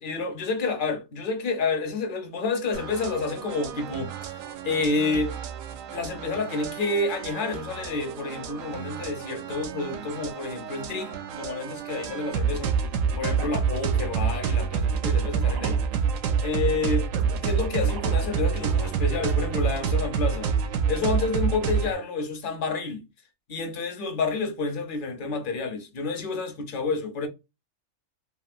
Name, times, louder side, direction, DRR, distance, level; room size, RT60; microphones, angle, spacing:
voice 1, 0.0-5.4 5.9-12.7 13.2-15.8 16.4-17.1 17.4-20.5 20.9-23.1 23.5-27.3, left 3 dB, 50° left, 0.7 m, -29 dB
sound 1, 2.7-21.9, right 6 dB, 85° right, 1.0 m, -28 dB
2.9 x 2.7 x 2.4 m
omnidirectional pair, 1.3 m